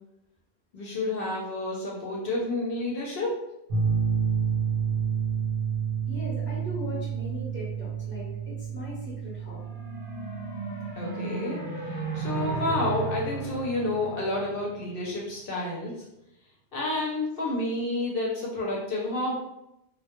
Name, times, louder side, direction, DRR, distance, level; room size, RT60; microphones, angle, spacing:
voice 1, 0.7-3.4 11.0-15.9 16.7-19.3, left 2 dB, 65° left, -3 dB, 0.7 m, -30 dB
sound 1, 3.7-10.9, right 7 dB, 65° right, 0.8 m, -29 dB
voice 2, 6.1-9.6 15.0-15.6, left 1 dB, 15° right, -7 dB, 0.6 m, -39 dB
sound 2, 9.5-15.0, right 4 dB, 25° left, 0.8 m, -35 dB
2.1 x 2.0 x 2.9 m, 0.86 s
omnidirectional pair, 1.1 m